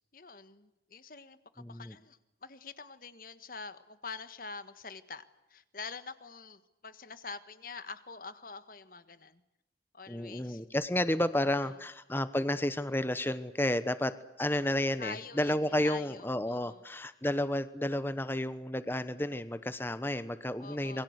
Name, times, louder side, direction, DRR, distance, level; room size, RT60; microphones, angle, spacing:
voice 1, 0.1-9.4 9.9-10.6 11.5-11.6 15.0-15.6 15.8-16.8 20.6-21.0, left 4 dB, 50° left, 12 dB, 1.6 m, -46 dB
voice 2, 1.6-2.0 10.1-21.0, left 1 dB, 10° left, 13 dB, 1.0 m, -31 dB
27.5 x 22.5 x 8.2 m, 0.92 s
head